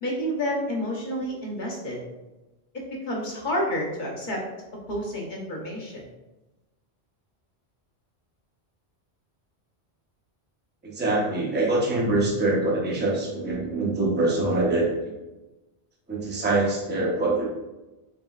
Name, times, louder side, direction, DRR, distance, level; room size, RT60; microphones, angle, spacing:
voice 1, 0.0-2.0 2.7-4.4 4.9-6.0, equal, 45° left, -2 dB, 1.0 m, -29 dB
voice 2, 10.8-15.1 16.1-17.5, right 2 dB, 10° right, -3 dB, 0.6 m, -24 dB
4.0 x 3.8 x 2.3 m, 1.1 s
omnidirectional pair, 1.1 m